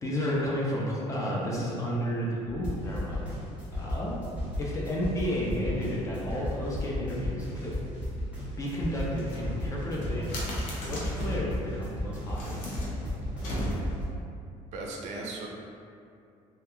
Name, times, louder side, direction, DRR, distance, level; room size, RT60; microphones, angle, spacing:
voice 1, 0.0-3.2 3.7-4.2 4.6-7.7 8.6-10.4 10.8-12.6, equal, 25° left, -4 dB, 0.4 m, -32 dB
Bass drum, 2.4-2.9 3.2-3.9 4.2-4.8 5.1-5.7 6.1-6.7 7.0-7.6 7.9-8.5 8.9-9.5 9.8-9.9, right 1 dB, 60° left, 1.1 m, -44 dB
sound 1, 2.6-14.0, left 1 dB, 10° right, 0.7 m, -35 dB
sound 2, 9.1-11.5 12.2-14.1, equal, 85° left, 0.6 m, -36 dB
voice 2, 13.4-13.9 14.7-15.5, right 2 dB, 60° right, -1 dB, 0.4 m, -39 dB
2.2 x 2.2 x 2.9 m, 2.5 s
cardioid pair, 155°, 13 cm